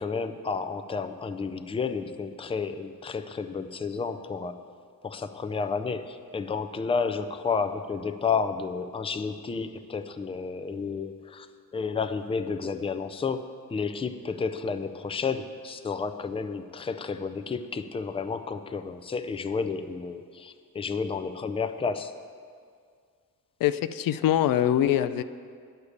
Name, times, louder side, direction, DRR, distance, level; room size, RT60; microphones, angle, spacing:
voice 1, 0.0-4.6 5.0-11.5 11.7-22.1, left 5 dB, 15° left, 9 dB, 0.5 m, -31 dB
voice 2, 23.6-25.2, left 11 dB, 80° left, 12 dB, 0.5 m, -23 dB
9.5 x 6.7 x 8.5 m, 2.1 s
cardioid pair, 115°, 34 cm